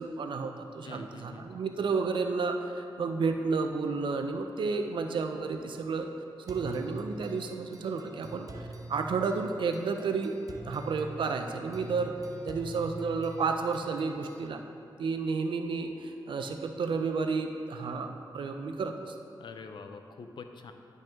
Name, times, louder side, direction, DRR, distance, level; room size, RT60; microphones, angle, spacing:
voice 1, 0.0-6.1 6.4-8.5 8.9-10.3 10.7-12.1 12.4-14.6 15.0-19.1, right 4 dB, 85° right, 5 dB, 0.6 m, -31 dB
voice 2, 0.8-1.6 19.4-20.7, left 4 dB, 75° left, 6 dB, 0.5 m, -45 dB
sound 1, 6.5-14.5, right 1 dB, 45° right, 0.7 m, -45 dB
10.5 x 5.3 x 3.6 m, 2.6 s
cardioid pair, 75°, 8 cm